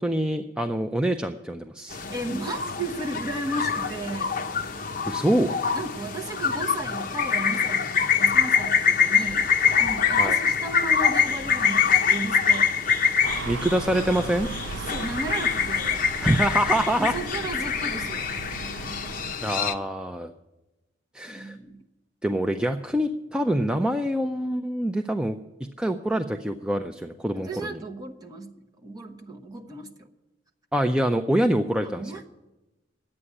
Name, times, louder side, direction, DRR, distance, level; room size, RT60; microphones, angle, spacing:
voice 1, 0.0-2.0 5.1-5.6 10.1-10.4 13.5-14.5 16.2-17.2 19.4-20.3 21.1-21.6 22.2-25.4 25.8-27.8 30.7-32.1, right 1 dB, 5° right, 6 dB, 0.4 m, -25 dB
sound 1, 1.9-19.7, left 6 dB, 45° left, 0.8 m, -25 dB
voice 2, 1.9-4.4 5.7-9.5 9.8-12.7 14.9-16.1 17.0-18.3 21.3-21.8 27.3-29.9 31.9-32.3, right 2 dB, 20° right, 2 dB, 1.1 m, -34 dB
sound 2, 13.2-19.4, right 5 dB, 90° right, 0.4 m, -38 dB
11.0 x 8.7 x 9.9 m, 1.0 s
head